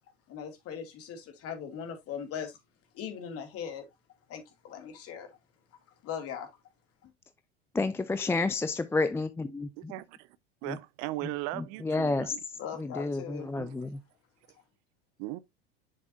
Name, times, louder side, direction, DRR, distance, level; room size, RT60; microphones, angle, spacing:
voice 1, 0.3-2.6 2.9-3.9 4.3-5.4 6.0-6.5 7.0-7.1 12.6-13.5, left 7 dB, 50° left, 2.6 m, -39 dB
voice 2, 7.7-9.9 10.6-10.8 11.2-14.0, left 3 dB, 10° left, 0.4 m, -31 dB
voice 3, 9.8-10.3 10.6-12.4 13.6-13.8 15.2-15.4, right 18 dB, 55° right, 0.6 m, -38 dB
7.0 x 6.6 x 2.7 m
hypercardioid pair, 85°, 31 cm